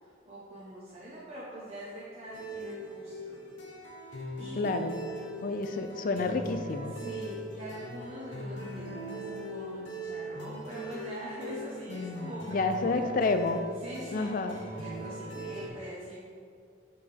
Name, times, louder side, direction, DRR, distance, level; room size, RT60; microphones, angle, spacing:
voice 1, 0.0-3.4 4.4-4.8 6.9-13.1 13.8-16.3, right 1 dB, 35° right, -8 dB, 0.9 m, -43 dB
sound 1, 2.3-15.7, right 1 dB, 75° left, 1.1 m, -41 dB
voice 2, 4.6-4.9 5.4-6.9 11.9-13.6 14.1-14.6, left 3 dB, 45° left, 8 dB, 0.4 m, -30 dB
6.8 x 5.1 x 3.4 m, 2.3 s
head